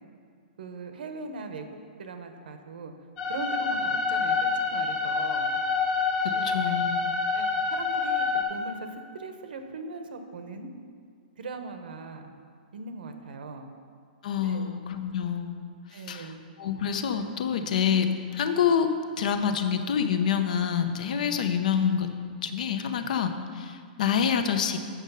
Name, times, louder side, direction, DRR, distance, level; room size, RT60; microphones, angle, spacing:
voice 1, 0.6-1.7 2.0-2.9 3.3-5.5 6.3-6.7 7.3-10.7 11.4-12.3 12.7-13.7 14.4-14.8 15.9-16.4, right 3 dB, 70° right, 7 dB, 0.9 m, -40 dB
sound 1, 3.2-8.4, left 4 dB, 20° left, 1.0 m, -27 dB
voice 2, 6.2-7.2 14.2-15.8 16.1-22.1 22.4-24.8, left 7 dB, 50° left, 8 dB, 0.6 m, -27 dB
8.3 x 6.2 x 5.5 m, 2.1 s
hypercardioid pair, 175°, 5 cm